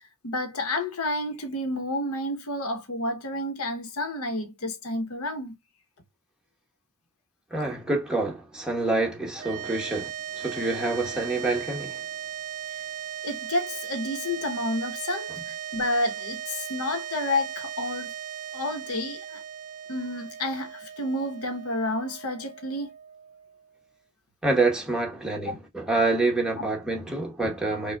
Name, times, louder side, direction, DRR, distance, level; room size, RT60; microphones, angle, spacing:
voice 1, 0.2-5.6 13.2-18.1 18.5-19.4 19.9-22.9 25.4-25.6 26.6-26.7, left 1 dB, 70° left, 1.0 m, -30 dB
voice 2, 7.5-12.0 24.4-27.9, right 2 dB, 5° right, 1.0 m, -27 dB
sound 1, 9.4-23.8, right 9 dB, 35° right, 0.3 m, -38 dB
5.2 x 2.2 x 2.2 m
head